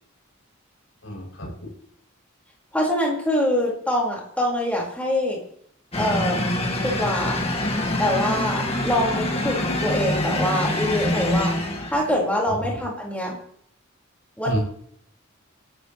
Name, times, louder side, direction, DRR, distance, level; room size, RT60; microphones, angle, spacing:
voice 1, 1.0-1.5 12.5-12.8 14.5-14.6, right 1 dB, 65° left, -2 dB, 7.6 m, -29 dB
voice 2, 2.7-5.4 6.0-6.4 6.8-7.4 8.0-11.5 11.9-13.3 14.4-14.6, left 1 dB, 5° left, -3 dB, 5.0 m, -24 dB
sound 1, 5.9-12.2, left 1 dB, 30° left, 2.2 m, -25 dB
22.0 x 13.0 x 3.3 m, 0.68 s
head